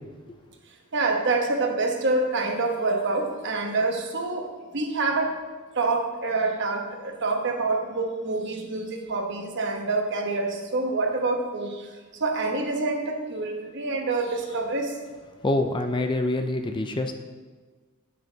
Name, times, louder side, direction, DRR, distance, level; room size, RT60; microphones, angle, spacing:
voice 1, 0.9-4.4 4.7-5.3 5.8-11.9 12.2-14.9, right 3 dB, 55° right, 2 dB, 1.1 m, -26 dB
voice 2, 15.4-17.1, left 2 dB, 20° left, 6 dB, 0.4 m, -25 dB
9.4 x 6.5 x 3.9 m, 1.4 s
head